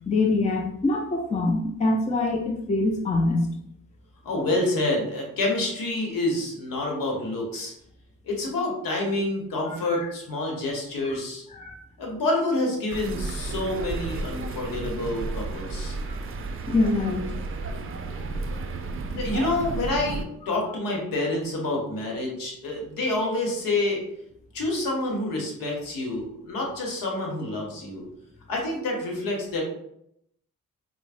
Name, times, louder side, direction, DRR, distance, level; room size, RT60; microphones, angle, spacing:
voice 1, 0.1-3.5 9.7-10.1 11.0-11.2 11.5-11.8 16.7-17.3, left 2 dB, 20° left, 2 dB, 0.5 m, -25 dB
voice 2, 4.2-7.7 8.2-11.4 12.0-16.0 19.1-24.0 24.5-28.0 28.5-29.6, left 2 dB, 80° left, -1 dB, 1.0 m, -28 dB
sound 1, 12.9-20.2, right 3 dB, 40° right, 0.5 m, -32 dB
4.5 x 2.1 x 2.4 m, 0.76 s
supercardioid pair, 45°, 33 cm